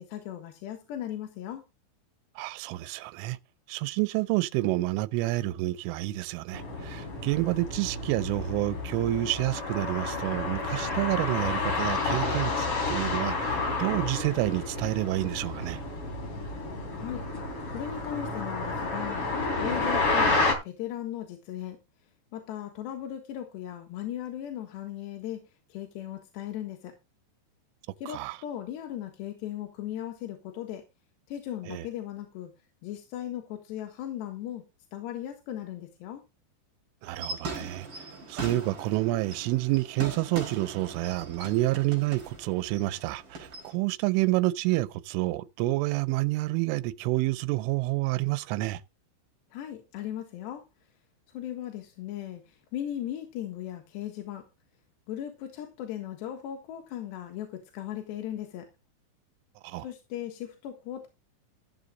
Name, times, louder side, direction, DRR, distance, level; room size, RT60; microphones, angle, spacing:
voice 1, 0.0-1.6 16.9-17.2 17.7-19.3 19.6-21.8 22.3-26.9 28.0-30.8 31.3-32.5 32.8-34.6 34.9-36.2 49.5-50.6 51.3-54.5 55.1-58.7 59.8-61.1, left 11 dB, 70° left, 3.4 m, -37 dB
voice 2, 2.4-3.4 3.7-15.8 28.1-28.4 31.7-31.8 37.0-37.9 38.3-48.8 59.6-59.9, right 18 dB, 80° right, 3.2 m, -29 dB
sound 1, 6.5-20.5, left 3 dB, 30° left, 3.6 m, -30 dB
sound 2, 37.0-43.7, right 3 dB, 30° right, 5.8 m, -40 dB
14.5 x 8.2 x 3.8 m
omnidirectional pair, 5.7 m